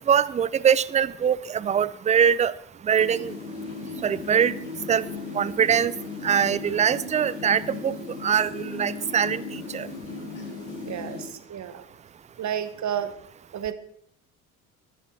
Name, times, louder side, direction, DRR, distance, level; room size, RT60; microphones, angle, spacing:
voice 1, 0.1-2.5 2.8-3.3 4.0-4.5 4.9-5.0 5.3-5.9 6.2-7.9 8.2-9.9, right 8 dB, 20° right, 19 dB, 0.4 m, -22 dB
sound 1, 3.0-11.3, left 4 dB, 55° left, 5.5 m, -36 dB
voice 2, 10.8-11.9 12.4-13.1 13.5-13.7, right 9 dB, 45° right, 12 dB, 1.2 m, -31 dB
12.0 x 10.0 x 4.1 m, 0.69 s
hypercardioid pair, 65°, 39 cm